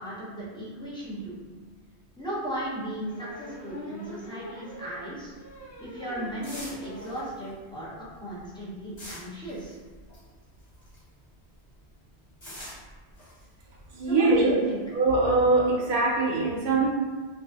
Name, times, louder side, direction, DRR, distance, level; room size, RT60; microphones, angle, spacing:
voice 1, 0.0-1.3 2.2-5.3 5.8-9.8 14.0-14.8, right 1 dB, 10° left, -8 dB, 0.3 m, -36 dB
sound 1, 1.8-1.9 3.0-7.3 7.7-7.8 8.1-8.2 8.4-8.6, left 1 dB, 75° left, 0.9 m, -43 dB
sound 2, 5.2-11.2 11.5-14.9, equal, 40° left, 1.1 m, -46 dB
voice 2, 13.9-14.5 14.9-16.9, right 3 dB, 65° right, -5 dB, 0.7 m, -22 dB
2.5 x 2.3 x 2.2 m, 1.4 s
omnidirectional pair, 1.1 m